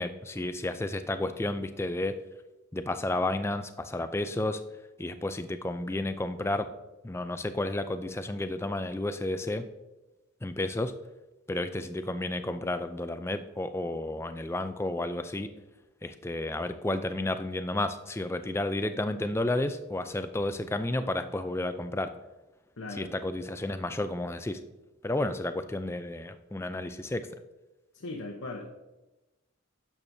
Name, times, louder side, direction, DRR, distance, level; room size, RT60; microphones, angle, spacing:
voice 1, 0.0-2.1 2.7-4.6 5.0-6.7 7.0-9.6 10.4-10.9 11.5-15.5 16.0-22.1 22.9-24.6 25.0-27.3, left 2 dB, 10° left, 10 dB, 0.3 m, -31 dB
voice 2, 22.8-23.1 27.9-28.7, left 2 dB, 75° left, 0 dB, 0.9 m, -38 dB
11.0 x 7.2 x 2.7 m, 1.0 s
head